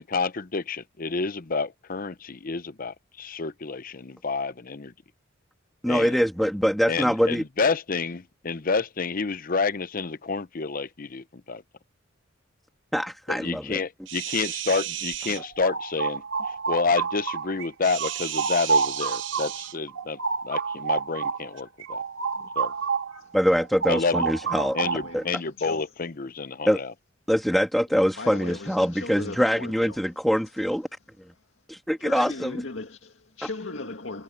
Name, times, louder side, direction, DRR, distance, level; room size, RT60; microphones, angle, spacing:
voice 1, 0.0-4.9 5.9-6.2 6.9-11.6 13.3-20.2 20.4-22.0 22.6-22.7 23.9-24.3 24.7-26.9, left 4 dB, 45° left, 0.7 m, -29 dB
voice 2, 5.8-7.4 12.9-13.8 23.3-24.8 25.1-25.2 26.7-26.8 27.3-30.9 31.7-32.5, equal, ahead, 1.8 m, -23 dB
sound 1, 14.1-15.4 17.8-19.8 21.6-21.7, right 12 dB, 70° right, 1.0 m, -34 dB
sound 2, 15.1-17.7 18.0-23.2 23.5-25.2, right 5 dB, 85° right, 2.8 m, -29 dB
voice 3, 24.4-25.9 28.1-30.0 31.3-31.5 32.0-34.2, left 3 dB, 70° left, 2.1 m, -38 dB
head